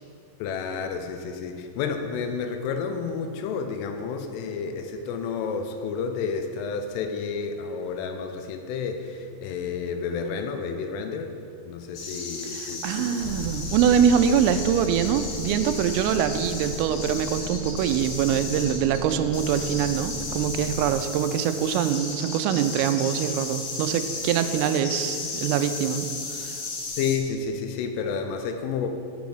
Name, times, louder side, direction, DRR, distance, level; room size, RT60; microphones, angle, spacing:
voice 1, 0.4-11.3 11.7-13.2 27.0-28.9, left 5 dB, 80° left, 6 dB, 3.2 m, -30 dB
sound 1, 11.9-27.2, left 3 dB, 60° left, 3.0 m, -35 dB
voice 2, 12.5-26.1 26.4-26.6, right 8 dB, 90° right, 9 dB, 3.2 m, -24 dB
sound 2, 13.2-20.9, left 2 dB, 45° left, 2.4 m, -37 dB
8.0 x 7.2 x 7.8 m, 2.3 s
omnidirectional pair, 5.8 m